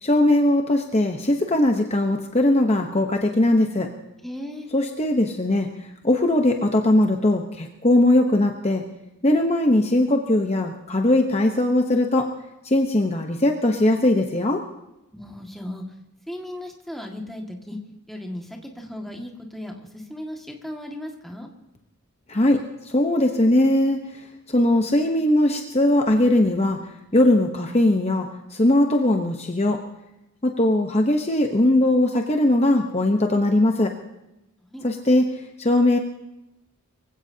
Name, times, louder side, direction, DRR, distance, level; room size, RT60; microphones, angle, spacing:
voice 1, 0.0-3.9 4.7-8.8 9.2-12.3 12.6-14.6 22.3-26.8 27.1-29.8 30.4-33.9 34.8-36.0, left 1 dB, 30° left, 3 dB, 0.9 m, -20 dB
voice 2, 4.2-4.7 15.1-15.8 16.3-17.8 18.1-21.5 34.6-34.8, left 1 dB, ahead, 0 dB, 1.9 m, -36 dB
24.0 x 16.0 x 2.8 m, 0.93 s
head